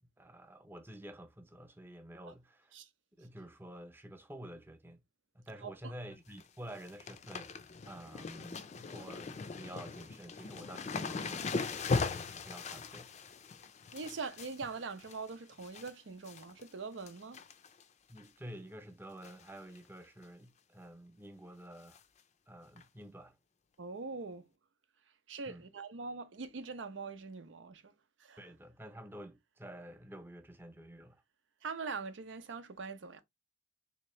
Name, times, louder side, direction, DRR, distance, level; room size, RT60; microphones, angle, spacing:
voice 1, 0.0-2.7 3.1-5.0 5.3-7.5 7.8-13.3 18.1-22.0 22.5-23.4 25.5-25.6 28.4-31.2, right 1 dB, 10° right, 0.6 m, -50 dB
voice 2, 5.6-5.9 13.9-17.4 23.8-24.4 25.3-27.9 28.2-28.4 31.6-33.2, right 4 dB, 90° right, 0.6 m, -42 dB
sound 1, 6.1-6.4 6.7-15.9 16.2-16.7 17.0-17.8 18.2-18.3 19.2-19.5 19.7-19.8 20.2-20.3 21.9-22.0 22.8-22.9, left 4 dB, 40° left, 0.4 m, -39 dB
3.5 x 2.9 x 3.0 m
head